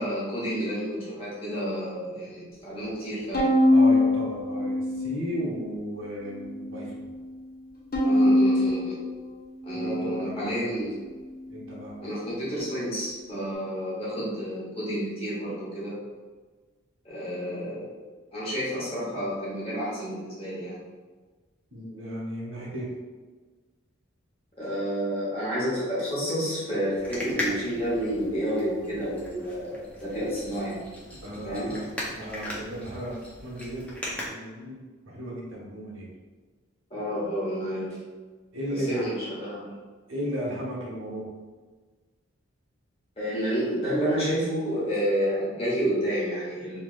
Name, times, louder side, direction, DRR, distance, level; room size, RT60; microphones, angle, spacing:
voice 1, 0.0-3.5 8.0-9.0 9.6-11.0 12.0-16.0 17.0-17.9 18.3-20.8 24.6-30.8 31.4-31.8 36.9-38.0 38.7-39.7 43.2-46.8, equal, 30° left, -8 dB, 1.0 m, -30 dB
Bowed string instrument, 3.3-5.7 6.2-6.9 7.9-10.4, left 1 dB, 45° left, 0.7 m, -24 dB
voice 2, 3.7-7.1 9.7-10.7 11.5-12.0 21.7-22.9 31.2-36.1 38.5-39.3 40.1-41.3, equal, 70° right, -5 dB, 0.9 m, -35 dB
sound 1, 27.0-34.3, left 1 dB, 5° left, 0.4 m, -38 dB
3.2 x 2.8 x 2.4 m, 1.4 s
head